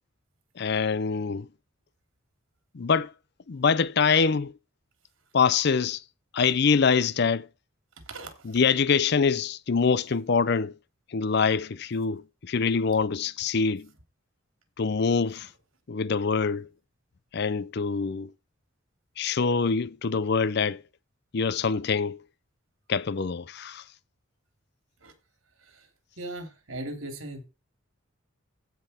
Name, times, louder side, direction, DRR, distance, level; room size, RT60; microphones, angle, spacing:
voice 1, 0.6-1.5 2.7-3.1 3.5-4.5 5.3-6.0 6.3-7.5 8.5-10.7 11.1-13.9 14.8-15.5 15.9-16.7 17.3-18.3 19.2-20.8 21.3-22.2 22.9-23.8, left 5 dB, 55° left, 0.5 m, -24 dB
voice 2, 8.1-8.6 25.0-25.1 25.6-25.9 26.2-27.5, right 1 dB, 80° right, 3.0 m, -39 dB
15.5 x 5.7 x 4.3 m
head